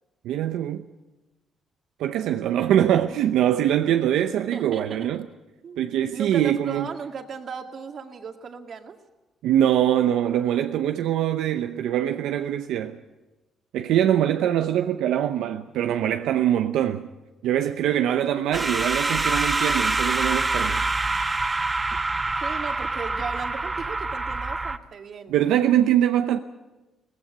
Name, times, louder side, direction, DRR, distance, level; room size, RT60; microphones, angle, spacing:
voice 1, 0.2-0.8 2.0-5.3 5.8-6.9 9.4-13.0 13.7-17.1 17.4-20.8 25.3-26.4, right 11 dB, 90° right, 0.7 m, -23 dB
voice 2, 4.5-5.0 5.6-5.8 6.1-9.0 17.8-18.1 18.5-19.2 21.0-21.2 22.4-25.4, right 6 dB, 55° right, 2.0 m, -37 dB
sound 1, 18.5-24.8, right 3 dB, 25° right, 1.0 m, -25 dB
18.5 x 16.0 x 9.4 m
cardioid pair, 90°, 0 cm